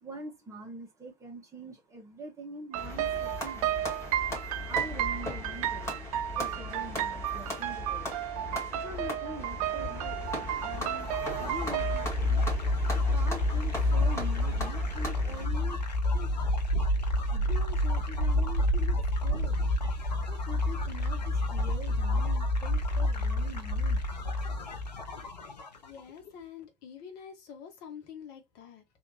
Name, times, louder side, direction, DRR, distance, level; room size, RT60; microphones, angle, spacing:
voice 1, 0.0-3.7 4.6-6.1 6.3-8.2 8.7-10.3 10.6-12.4 12.9-15.8 16.1-16.6 17.3-19.6 20.3-24.0, right 1 dB, 15° right, 1.4 m, -44 dB
sound 1, 2.7-15.5, left 1 dB, 15° left, 1.9 m, -39 dB
sound 2, 2.7-12.1, right 12 dB, 55° right, 0.4 m, -33 dB
sound 3, 10.3-26.0, left 1 dB, 80° left, 0.7 m, -29 dB
voice 2, 25.8-28.8, left 7 dB, 50° left, 1.3 m, -46 dB
3.4 x 2.8 x 2.6 m
figure-of-eight pair, 70°, 21 cm